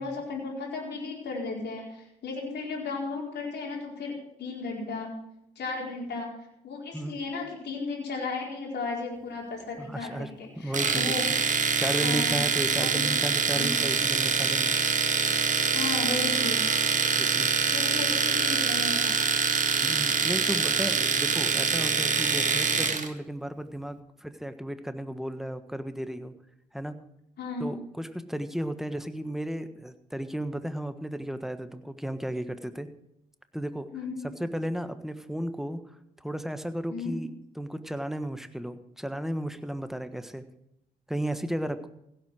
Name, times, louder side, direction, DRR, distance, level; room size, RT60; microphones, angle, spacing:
voice 1, 0.0-4.1 4.4-5.1 5.6-6.3 6.6-11.2 12.0-12.4 12.7-13.0 13.5-13.8 15.7-16.6 17.7-19.2 27.4-27.7 33.9-34.2 36.9-37.2, left 3 dB, 65° left, -2 dB, 4.5 m, -34 dB
voice 2, 9.8-10.3 10.6-11.3 11.8-14.8 17.2-17.7 19.8-26.3 26.7-26.9 27.6-32.9 33.5-33.9 34.4-35.8 36.2-37.3 37.5-40.4 41.1-41.9, right 1 dB, ahead, 10 dB, 1.4 m, -34 dB
Domestic sounds home sounds, 10.7-23.1, right 5 dB, 40° right, 1.7 m, -25 dB
16.5 x 7.9 x 6.4 m, 0.79 s
hypercardioid pair, 40°, 19 cm